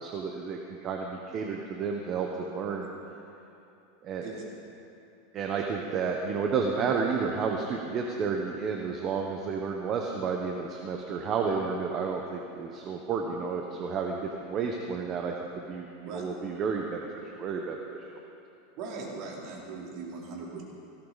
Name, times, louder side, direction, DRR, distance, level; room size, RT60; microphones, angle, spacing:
voice 1, 0.0-2.9 4.0-4.5 5.3-18.0, right 5 dB, 30° right, 1 dB, 1.2 m, -31 dB
voice 2, 18.8-20.6, right 4 dB, 50° right, -3 dB, 3.8 m, -39 dB
17.5 x 17.0 x 4.2 m, 2.8 s
supercardioid pair, 150°, 0 cm